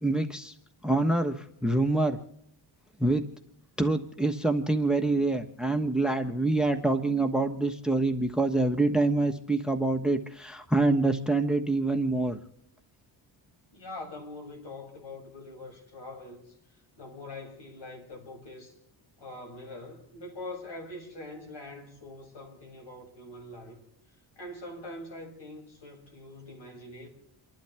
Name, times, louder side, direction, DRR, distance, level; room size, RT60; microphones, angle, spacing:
voice 1, 0.0-0.5 0.8-2.2 3.0-3.2 3.8-12.4, right 2 dB, ahead, 1.2 m, -26 dB
voice 2, 13.7-18.8 19.2-23.8 24.4-27.1, left 2 dB, 60° left, 7.1 m, -43 dB
29.5 x 11.5 x 3.5 m
cardioid pair, 95°, 48 cm